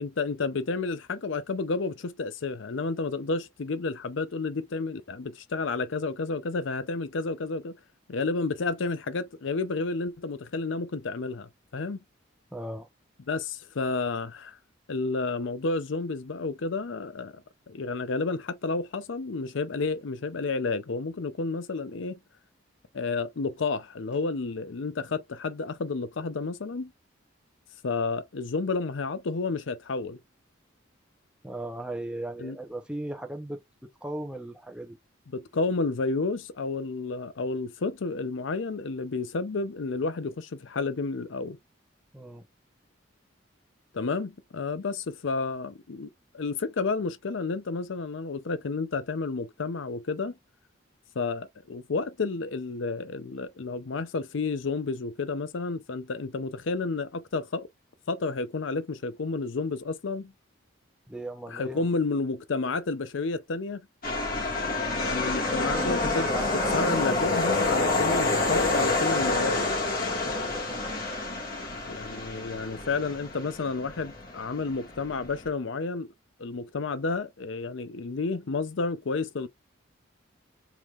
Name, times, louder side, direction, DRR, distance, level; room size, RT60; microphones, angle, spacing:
voice 1, 0.0-7.7 8.1-12.0 13.3-14.6 14.9-17.4 17.7-22.2 22.9-26.9 27.8-30.2 32.4-32.6 35.3-41.6 43.9-50.3 51.2-57.7 58.1-60.3 61.5-63.9 65.0-66.5 66.7-69.7 71.9-76.1 76.4-79.5, left 3 dB, 75° left, 0.6 m, -31 dB
voice 2, 12.5-12.9 31.4-33.6 34.0-35.0 42.1-42.4 61.1-61.9 65.4-67.0 70.2-70.9, right 1 dB, 5° right, 0.8 m, -37 dB
sound 1, 64.0-75.5, left 2 dB, 45° left, 1.8 m, -28 dB
4.6 x 3.6 x 2.4 m
head